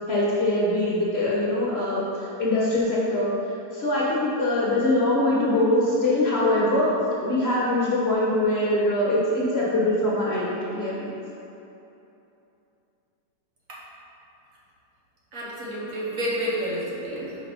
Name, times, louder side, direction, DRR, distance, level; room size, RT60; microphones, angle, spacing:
voice 1, 0.1-3.3 3.7-6.9 7.2-11.2, left 1 dB, 45° left, -6 dB, 1.0 m, -23 dB
voice 2, 15.3-17.4, equal, 55° right, -6 dB, 1.4 m, -30 dB
5.3 x 4.2 x 5.5 m, 2.9 s
omnidirectional pair, 1.8 m